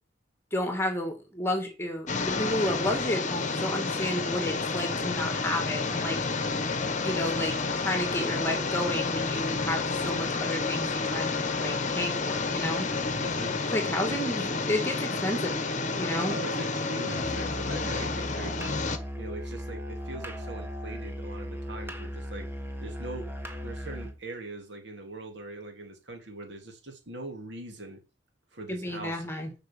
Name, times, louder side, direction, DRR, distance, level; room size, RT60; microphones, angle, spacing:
voice 1, 0.5-6.2 7.0-12.9 13.6-15.6 16.0-16.3 28.7-29.5, left 1 dB, 15° left, 2.2 m, -31 dB
sound 1, 2.1-19.0, left 4 dB, 40° left, 1.1 m, -30 dB
voice 2, 13.2-13.6 16.2-18.6 19.2-22.5 22.8-23.3 23.6-28.0 28.5-29.2, right 2 dB, 65° right, 2.6 m, -41 dB
Musical instrument, 17.1-24.2, equal, 10° right, 1.4 m, -37 dB
7.3 x 5.7 x 7.5 m
head